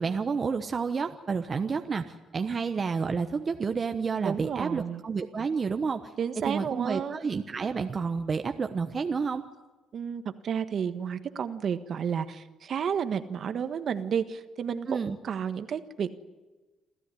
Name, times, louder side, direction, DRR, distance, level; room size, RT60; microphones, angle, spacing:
voice 1, 0.0-6.1 6.5-9.4 14.9-15.2, right 5 dB, 35° right, 6 dB, 1.0 m, -30 dB
voice 2, 4.2-5.0 6.2-7.2 9.9-16.1, right 7 dB, 55° right, 10 dB, 1.4 m, -31 dB
28.0 x 14.0 x 9.9 m, 1.2 s
cardioid pair, 110°, 0 cm